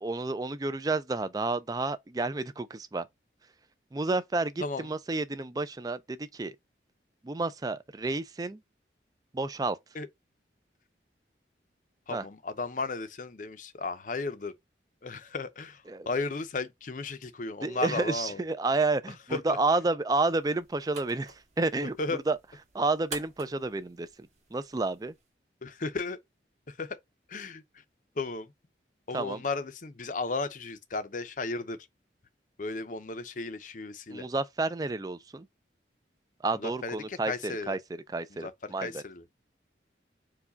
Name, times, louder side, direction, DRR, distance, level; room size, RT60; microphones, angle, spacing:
voice 1, 0.0-3.1 3.9-4.5 4.8-6.6 7.2-8.6 9.3-9.8 12.1-12.2 15.9-16.1 17.6-22.0 22.3-22.4 22.7-24.1 24.5-25.1 29.1-29.4 34.1-35.5 36.4-37.8 38.1-39.0, right 3 dB, 20° right, 0.4 m, -30 dB
voice 2, 12.1-14.5 15.0-18.4 19.3-19.6 22.0-22.2 25.6-26.2 26.7-27.0 27.3-27.6 28.2-28.5 29.1-31.8 32.6-34.3 36.5-37.8 38.3-38.5 38.8-39.2, left 3 dB, 45° left, 0.6 m, -34 dB
sound 1, 20.3-25.3, right 4 dB, 35° right, 1.3 m, -48 dB
4.7 x 2.3 x 3.9 m
head